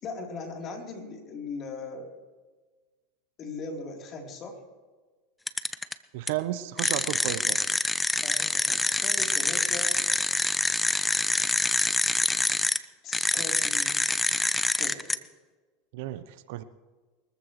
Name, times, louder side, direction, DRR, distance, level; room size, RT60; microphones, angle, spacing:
voice 1, 0.0-2.1 3.4-4.6 8.2-10.0 13.0-14.1 14.8-15.1, left 3 dB, 40° left, 1 dB, 3.6 m, -39 dB
sound 1, 5.5-5.9 6.3-6.4 6.8-12.8 13.1-15.1, left 2 dB, 10° left, 0.8 m, -26 dB
voice 2, 6.1-7.6 15.9-16.6, right 14 dB, 65° right, 13 dB, 0.9 m, -33 dB
23.5 x 14.5 x 3.2 m, 1.3 s
hypercardioid pair, 85°, 0 cm